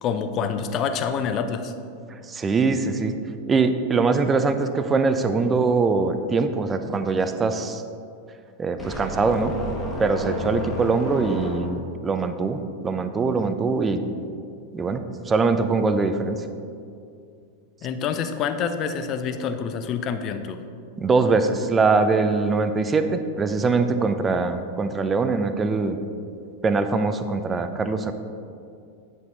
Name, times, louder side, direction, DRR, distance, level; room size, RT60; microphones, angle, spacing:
voice 1, 0.0-1.7 17.8-20.6, left 6 dB, 35° left, 8 dB, 0.5 m, -27 dB
voice 2, 2.1-3.2 3.5-7.8 8.6-9.5 10.0-14.1 14.7-16.4 21.0-26.0 26.6-28.1, right 4 dB, 20° right, 9 dB, 0.5 m, -22 dB
sound 1, 8.8-12.0, equal, 5° left, 1.5 m, -32 dB
9.0 x 5.6 x 4.0 m, 2.4 s
figure-of-eight pair, 90°, 0 cm